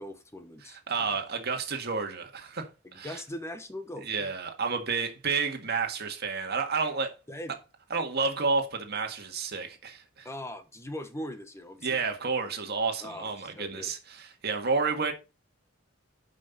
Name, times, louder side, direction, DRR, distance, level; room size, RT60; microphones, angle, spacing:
voice 1, 0.0-1.2 2.8-4.3 7.3-7.6 10.2-12.0 13.0-13.9, left 1 dB, 15° left, 1.2 m, -41 dB
voice 2, 0.6-3.2 4.0-7.1 7.9-10.3 11.8-15.1, right 4 dB, 55° right, 1.8 m, -30 dB
9.8 x 5.6 x 4.1 m
head